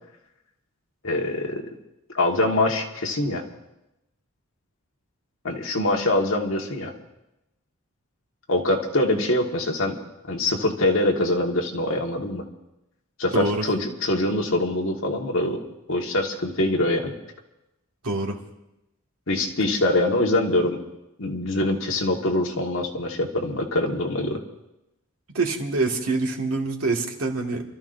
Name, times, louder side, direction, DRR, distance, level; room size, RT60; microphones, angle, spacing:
voice 1, 1.0-1.7 2.1-3.4 5.4-6.9 8.5-10.0 10.3-12.4 13.2-15.6 15.9-17.1 19.3-20.8 21.2-24.4, left 1 dB, 65° left, 1 dB, 1.7 m, -24 dB
voice 2, 13.3-13.6 18.0-18.4 25.3-27.6, right 3 dB, 85° right, 0 dB, 2.0 m, -25 dB
29.5 x 13.5 x 2.7 m, 0.92 s
head